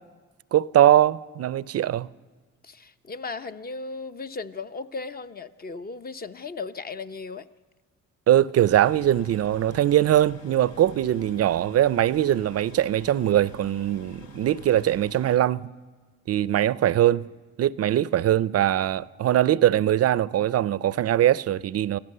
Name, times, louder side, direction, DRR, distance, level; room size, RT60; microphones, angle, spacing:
voice 1, 0.5-2.1 8.3-15.7 16.3-17.3 17.6-22.0, right 12 dB, 55° right, 0.5 m, -21 dB
voice 2, 2.6-7.5, left 4 dB, 30° left, 0.8 m, -36 dB
sound 1, 8.7-15.4, left 4 dB, 60° left, 1.1 m, -47 dB
25.0 x 16.0 x 6.7 m
cardioid pair, 90°, 30 cm